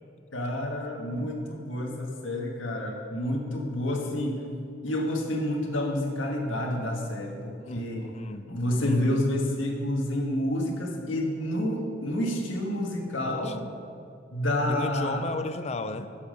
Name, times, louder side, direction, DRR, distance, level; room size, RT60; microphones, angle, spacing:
voice 1, 0.3-4.4 4.8-8.2 8.5-13.6 14.3-15.2, left 1 dB, 90° left, 1 dB, 1.6 m, -29 dB
voice 2, 7.6-8.5 8.8-9.3 13.4-13.7 14.7-16.1, left 2 dB, 35° left, 10 dB, 0.5 m, -34 dB
12.0 x 7.3 x 5.2 m, 2.4 s
head